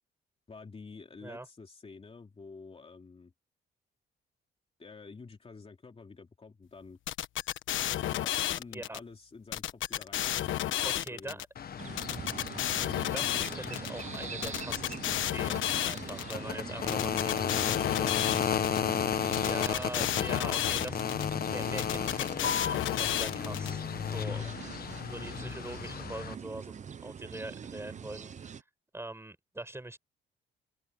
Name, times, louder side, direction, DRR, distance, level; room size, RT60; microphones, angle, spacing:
voice 1, 0.5-3.3 4.8-7.0 8.1-11.4 16.4-20.3 24.2-24.5, left 4 dB, 30° left, 2.9 m, -49 dB
sound 1, 7.1-9.0 9.5-11.4 12.0-13.9 14.4-16.4 16.9-18.8 19.3-21.3 21.8-23.7, left 12 dB, 75° left, 1.2 m, -32 dB
voice 2, 8.7-9.0 10.8-11.4 13.1-18.2 19.4-21.0 21.5-24.4 25.1-28.6 28.9-30.0, right 2 dB, 10° right, 7.3 m, -43 dB
sound 2, 11.6-26.3, left 8 dB, 50° left, 1.1 m, -34 dB
sound 3, 11.8-28.6, right 7 dB, 35° right, 0.7 m, -44 dB
open air
cardioid pair, 90°, 20 cm